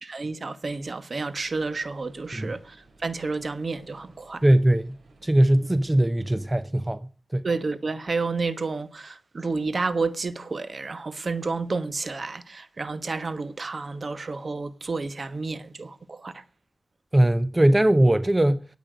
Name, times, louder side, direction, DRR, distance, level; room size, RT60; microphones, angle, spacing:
voice 1, 0.0-2.8 3.0-4.4 7.4-16.4, right 3 dB, 50° right, 1.2 m, -30 dB
sound 1, 1.3-6.6, right 2 dB, 75° right, 7.3 m, -57 dB
voice 2, 4.4-5.0 5.2-7.0 7.3-7.5 17.1-18.6, right 1 dB, 20° right, 0.7 m, -20 dB
23.5 x 8.6 x 5.0 m
wide cardioid pair, 75°, 0 cm